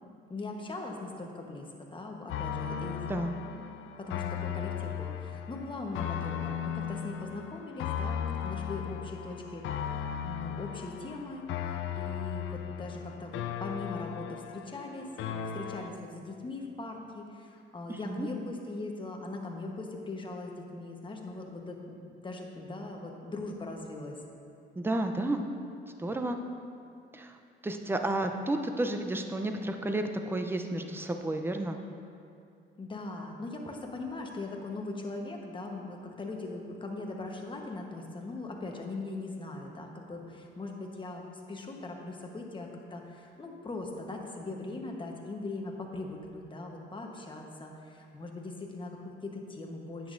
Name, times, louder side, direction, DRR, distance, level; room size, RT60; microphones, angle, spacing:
voice 1, 0.3-3.1 4.0-24.2 32.8-50.1, left 2 dB, 25° left, 1 dB, 1.1 m, -40 dB
sound 1, 2.3-15.9, left 9 dB, 85° left, 0.4 m, -36 dB
voice 2, 17.9-18.3 24.8-25.4 26.0-26.4 27.1-27.4 27.6-31.8, right 1 dB, 10° right, 5 dB, 0.6 m, -31 dB
10.0 x 8.2 x 2.6 m, 2.4 s
cardioid pair, 90°, 20 cm